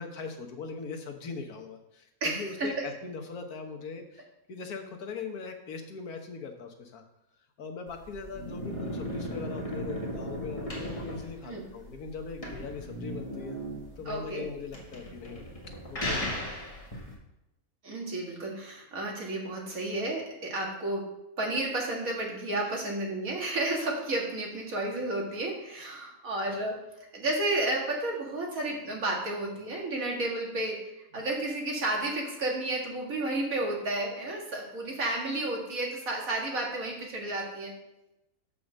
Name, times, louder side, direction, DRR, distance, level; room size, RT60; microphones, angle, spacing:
voice 1, 0.0-7.0 7.6-13.6 14.0-15.4 15.9-16.5 22.6-22.7, left 5 dB, 85° left, 4 dB, 1.6 m, -40 dB
voice 2, 2.2-2.7 11.5-11.7 14.1-14.5 17.8-21.1 21.4-26.8 27.1-37.7, right 2 dB, 70° right, -1 dB, 2.3 m, -32 dB
sound 1, 7.9-17.1, equal, 25° left, 2.0 m, -37 dB
7.1 x 5.6 x 6.4 m, 0.91 s
omnidirectional pair, 1.5 m